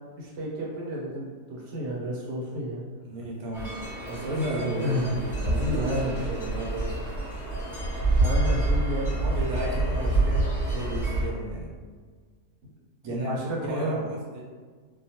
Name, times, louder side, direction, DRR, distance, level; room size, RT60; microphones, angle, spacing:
voice 1, 0.2-2.8 4.8-5.1 5.8-6.1 8.2-9.1 13.0-14.0, equal, 85° right, -4 dB, 1.3 m, -31 dB
voice 2, 3.0-3.7 4.1-7.1 9.1-11.7 13.0-13.4 13.6-14.4, right 1 dB, 70° right, -3 dB, 1.1 m, -33 dB
sound 1, 3.5-11.3, right 2 dB, ahead, 1.0 m, -27 dB
2.8 x 2.1 x 2.7 m, 1.6 s
omnidirectional pair, 1.8 m